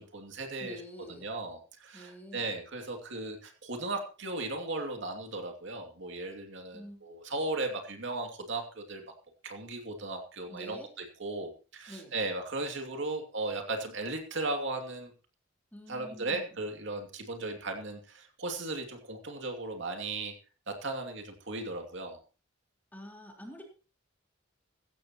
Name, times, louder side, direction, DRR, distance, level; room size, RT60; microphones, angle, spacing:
voice 1, 0.0-0.8 1.2-9.0 9.4-15.1 15.9-20.3 20.7-22.2, right 2 dB, 65° right, 4 dB, 2.7 m, -36 dB
voice 2, 0.6-1.3 1.9-2.5 6.7-7.0 10.5-10.9 11.9-12.1 15.7-16.6 22.9-23.6, equal, 10° left, 0 dB, 3.9 m, -47 dB
16.5 x 15.5 x 3.0 m, 0.34 s
head